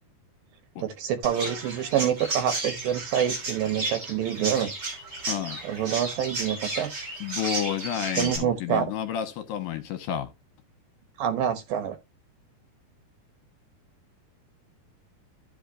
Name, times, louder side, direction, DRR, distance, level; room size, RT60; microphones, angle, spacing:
voice 1, 0.8-4.7 5.6-6.9 8.2-8.9 11.2-12.0, right 9 dB, 70° right, 2.7 m, -27 dB
Chirp tweet, 1.2-8.4, right 2 dB, 30° right, 3.3 m, -33 dB
voice 2, 5.3-5.6 7.2-10.3, left 10 dB, 75° left, 2.4 m, -30 dB
14.5 x 5.3 x 2.4 m
omnidirectional pair, 4.6 m